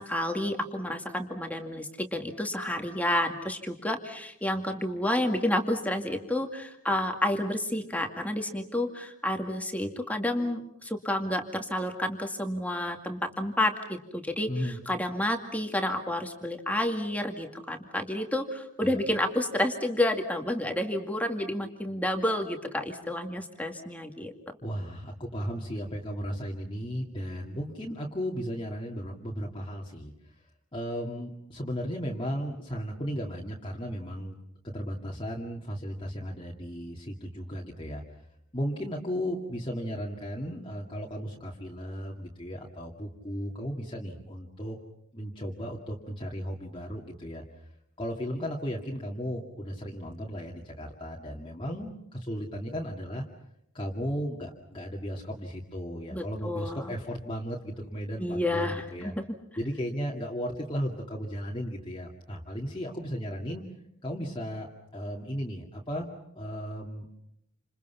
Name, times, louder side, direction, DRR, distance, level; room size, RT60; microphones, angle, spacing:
voice 1, 0.0-24.3 56.1-56.9 58.2-59.2, left 1 dB, 5° left, 4 dB, 2.2 m, -30 dB
voice 2, 14.5-14.8 18.8-19.0 24.6-30.1 30.7-34.4 34.6-38.0 38.5-44.8 45.1-47.4 48.0-53.2 53.7-59.1 59.6-63.6 64.0-66.1 66.3-67.1, equal, 25° left, -2 dB, 2.3 m, -35 dB
29.5 x 27.5 x 5.8 m, 0.78 s
head